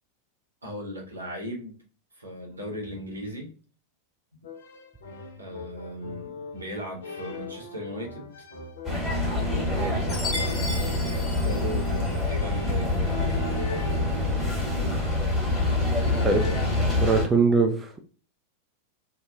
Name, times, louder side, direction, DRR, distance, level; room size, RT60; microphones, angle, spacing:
voice 1, 0.6-1.8 2.1-3.5 5.4-8.3 9.3-10.1 11.1-13.3, equal, 80° right, -1 dB, 0.9 m, -37 dB
sound 1, 4.4-17.0, left 4 dB, 60° left, 0.5 m, -41 dB
sound 2, 8.8-17.3, left 2 dB, 15° left, 1.4 m, -26 dB
Chime, 10.1-12.4, left 3 dB, 35° left, 1.1 m, -35 dB
voice 2, 16.1-16.5 17.0-18.0, right 4 dB, 15° right, 4 dB, 0.3 m, -23 dB
2.9 x 2.1 x 2.2 m, 0.39 s
figure-of-eight pair, 90°, 0 cm